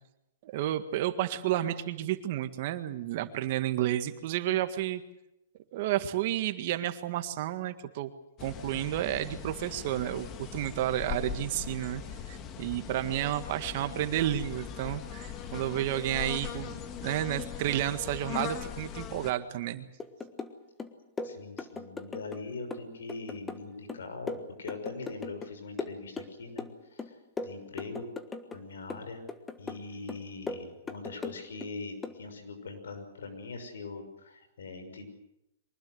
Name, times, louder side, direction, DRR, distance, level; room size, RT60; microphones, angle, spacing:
voice 1, 0.4-5.0 5.7-8.1 8.4-12.0 12.3-19.9, right 13 dB, 45° right, 9 dB, 1.8 m, -31 dB
sound 1, 8.4-19.3, left 8 dB, 25° left, 1.8 m, -40 dB
sound 2, 20.0-20.5 20.8-22.4 22.7-25.5 25.8-26.7 27.0-28.6 28.9-29.8 30.1-31.7 32.0-32.2, left 3 dB, 10° left, 1.4 m, -39 dB
voice 2, 21.2-26.7 26.9-28.1 28.5-29.2 29.6-35.1, left 3 dB, 85° left, 8 dB, 6.2 m, -42 dB
24.0 x 20.0 x 8.0 m, 0.86 s
hypercardioid pair, 150°, 0 cm